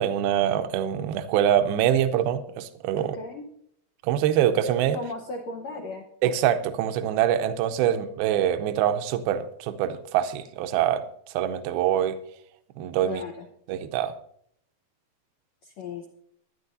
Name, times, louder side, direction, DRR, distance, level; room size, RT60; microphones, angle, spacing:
voice 1, 0.0-3.2 4.0-5.0 6.2-11.0 11.3-12.2 12.8-13.2 13.7-14.1, right 10 dB, 80° right, 10 dB, 2.5 m, -24 dB
voice 2, 3.1-3.4 4.9-6.0 13.0-13.5 15.6-16.1, left 3 dB, 80° left, 2 dB, 1.5 m, -36 dB
22.0 x 9.9 x 2.6 m, 0.69 s
omnidirectional pair, 4.6 m